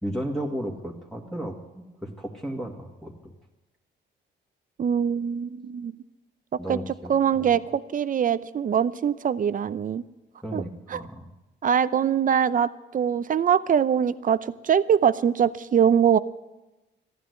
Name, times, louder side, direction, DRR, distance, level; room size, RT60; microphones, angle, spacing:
voice 1, 0.0-3.3 6.6-7.4 10.4-11.3, equal, ahead, -2 dB, 2.2 m, -34 dB
voice 2, 4.8-5.9 6.7-6.8 7.1-10.0 10.5-10.6 10.9-11.0 11.6-16.2, right 8 dB, 40° right, 15 dB, 0.6 m, -23 dB
14.5 x 11.0 x 8.2 m, 1.0 s
cardioid pair, 90°, 20 cm